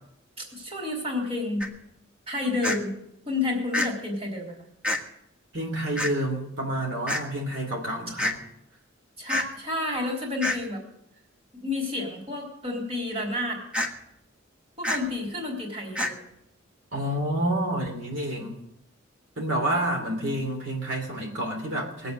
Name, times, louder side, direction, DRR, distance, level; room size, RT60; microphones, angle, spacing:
voice 1, 0.5-1.6 2.3-3.0 3.3-4.6 9.2-10.8 11.6-13.6 14.8-16.1 18.3-18.5, left 2 dB, 30° right, -1 dB, 3.7 m, -30 dB
sound 1, 1.6-1.7 2.6-2.8 3.7-3.9 4.8-5.0 6.0-6.1 7.1-7.2 8.2-8.3 9.3-9.5 10.4-10.6 13.7-13.9 14.8-15.0 16.0-16.1, left 1 dB, 5° right, 1.4 m, -26 dB
voice 2, 5.5-8.4 16.9-18.6 19.4-22.1, right 1 dB, 65° right, 0 dB, 3.0 m, -29 dB
20.5 x 7.9 x 7.8 m, 0.79 s
head